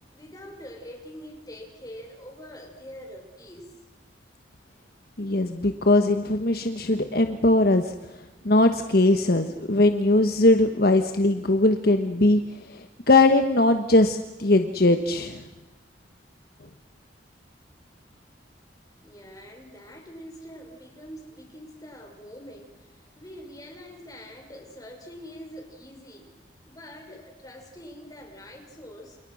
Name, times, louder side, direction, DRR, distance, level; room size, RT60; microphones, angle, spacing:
voice 1, 0.1-3.7 19.0-26.3 26.6-29.2, equal, 20° left, 2 dB, 6.1 m, -44 dB
voice 2, 5.2-7.9 8.4-15.4, left 2 dB, 55° left, 7 dB, 1.3 m, -20 dB
29.0 x 28.5 x 6.4 m, 1.1 s
head